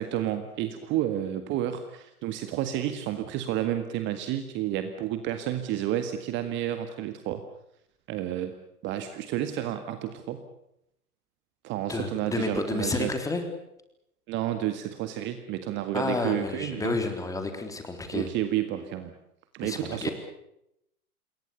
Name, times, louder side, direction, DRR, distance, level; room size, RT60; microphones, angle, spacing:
voice 1, 0.0-7.4 8.1-8.5 8.8-10.4 11.6-13.1 14.3-17.0 18.1-19.1 19.5-20.1, right 12 dB, 25° right, 9 dB, 1.8 m, -30 dB
voice 2, 11.9-13.4 15.9-18.3 19.6-20.1, left 3 dB, 5° left, 6 dB, 3.6 m, -30 dB
28.0 x 22.0 x 6.9 m, 0.81 s
figure-of-eight pair, 110°, 44 cm